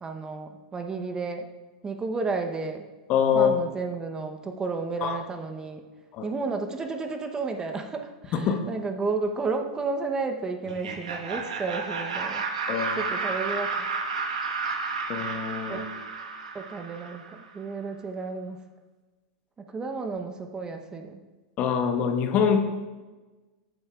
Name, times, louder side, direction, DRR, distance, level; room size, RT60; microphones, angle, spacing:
voice 1, 0.0-1.5 1.8-2.8 3.3-5.8 6.2-12.4 13.0-13.9 15.7-16.1 16.5-18.6 19.6-21.2, right 4 dB, 20° right, 6 dB, 0.8 m, -32 dB
voice 2, 3.1-3.5 5.0-5.2 6.1-6.3 8.3-8.6 12.7-13.1 15.1-15.9 21.6-22.6, left 7 dB, 40° left, 6 dB, 1.0 m, -24 dB
Laughter, 10.6-17.4, right 4 dB, 90° right, 1.2 m, -32 dB
14.0 x 7.8 x 2.4 m, 1.2 s
hypercardioid pair, 110°, 4 cm